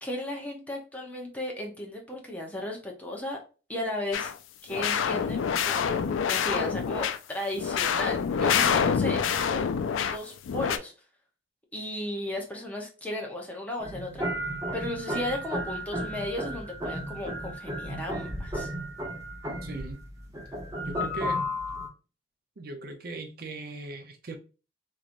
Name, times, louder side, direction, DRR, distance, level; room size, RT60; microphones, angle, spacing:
voice 1, 0.0-3.4 3.7-4.3 4.6-9.7 10.0-10.9 11.7-18.7, left 1 dB, 10° left, 0 dB, 0.7 m, -35 dB
sound 1, 4.1-4.3 4.7-7.2 7.6-10.2 10.5-10.8, left 7 dB, 85° left, 0.3 m, -26 dB
voice 2, 8.4-8.8 19.6-20.0 20.8-21.4 22.6-24.4, right 3 dB, 50° right, 5 dB, 0.5 m, -39 dB
sound 2, 13.8-21.9, equal, 20° right, 1.0 m, -34 dB
3.8 x 3.1 x 2.5 m, 0.34 s
head